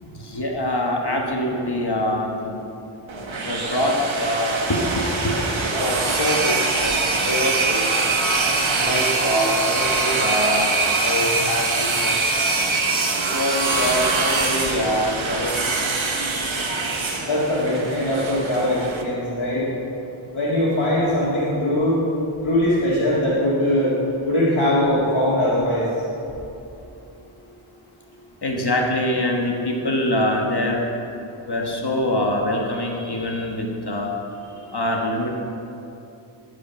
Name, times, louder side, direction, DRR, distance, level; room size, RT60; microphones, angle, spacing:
voice 1, 0.0-2.6 3.4-5.4 5.7-7.9 8.7-12.2 13.3-15.6 28.4-30.8 31.5-34.1 34.7-35.4, left 1 dB, 55° left, 0 dB, 1.3 m, -24 dB
sound 1, 3.1-19.0, right 3 dB, 70° right, 1.0 m, -23 dB
voice 2, 17.2-19.8 20.3-22.0 22.4-23.9 24.2-25.9, left 1 dB, 75° left, -11 dB, 2.1 m, -21 dB
13.0 x 5.0 x 5.8 m, 2.8 s
wide cardioid pair, 45°, 48 cm